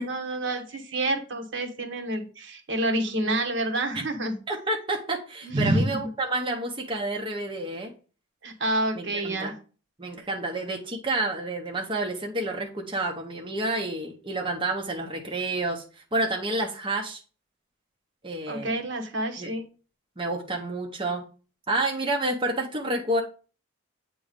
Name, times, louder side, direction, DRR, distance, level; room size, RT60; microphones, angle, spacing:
voice 1, 0.0-4.4 5.4-6.0 8.4-9.5 18.5-19.6, right 1 dB, 65° right, 4 dB, 1.1 m, -28 dB
voice 2, 4.5-7.9 9.0-9.5 10.0-17.2 18.2-18.8 19.4-19.5 20.2-21.2 21.7-23.2, right 2 dB, 25° right, 0 dB, 0.7 m, -29 dB
8.3 x 3.0 x 5.1 m, 0.38 s
head